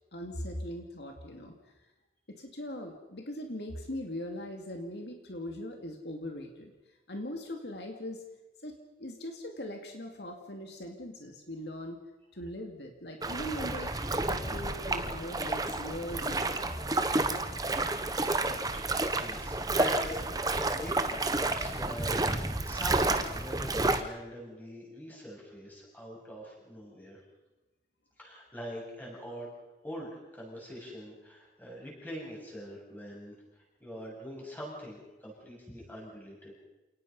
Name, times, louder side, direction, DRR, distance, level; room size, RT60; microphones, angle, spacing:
voice 1, 0.1-1.5 2.3-6.7 7.1-8.2 8.6-8.7 9.0-12.0 12.3-13.9 14.3-16.7, left 1 dB, 70° left, 3 dB, 2.4 m, -40 dB
sound 1, 13.2-24.0, right 2 dB, 20° right, 1.0 m, -30 dB
voice 2, 18.7-27.2 28.2-29.5 29.8-33.4 33.8-36.5, equal, 10° left, -3 dB, 7.9 m, -43 dB
28.5 x 19.0 x 5.5 m, 1.1 s
head